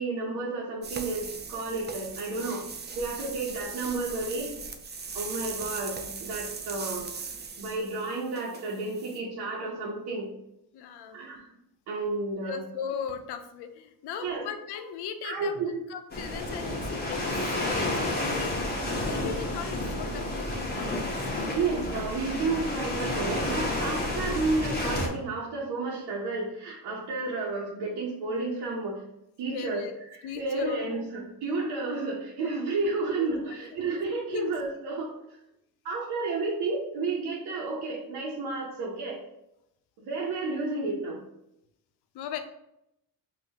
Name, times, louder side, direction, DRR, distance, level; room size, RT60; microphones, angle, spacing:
voice 1, 0.0-2.6 2.9-4.5 5.1-7.1 7.6-10.3 11.1-11.5 11.9-12.6 14.2-14.5 15.2-15.8 21.5-29.0 29.4-29.8 30.1-35.4 35.8-39.2 40.0-41.2, right 3 dB, 85° right, -5 dB, 1.0 m, -31 dB
sound 1, 0.8-9.2, right 5 dB, 25° right, 0.5 m, -39 dB
voice 2, 10.7-11.2 12.4-21.2 29.5-29.9 30.2-30.8 33.2-33.3 34.3-34.5 42.1-42.4, left 8 dB, 80° left, 8 dB, 0.6 m, -38 dB
sound 2, 16.1-25.1, left 1 dB, 25° left, 1.1 m, -30 dB
5.6 x 2.6 x 2.9 m, 0.82 s
cardioid pair, 90°, 39 cm